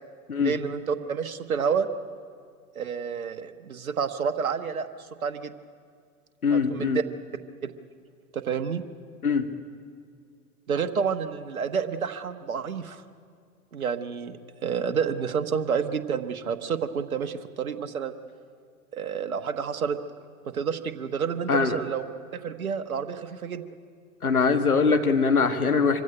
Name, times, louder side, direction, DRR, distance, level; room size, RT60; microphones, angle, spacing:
voice 1, 0.4-1.9 2.7-4.9 5.2-5.5 6.5-7.0 7.6-7.7 8.3-8.8 10.7-13.0 13.7-14.4 14.6-18.1 18.9-20.0 20.4-22.0 22.4-23.6, right 6 dB, 70° right, 8 dB, 1.3 m, -29 dB
voice 2, 6.4-7.0 9.2-9.5 21.5-21.8 24.2-26.0, left 5 dB, 80° left, 7 dB, 1.7 m, -22 dB
24.5 x 16.0 x 10.0 m, 2.2 s
figure-of-eight pair, 100°, 43 cm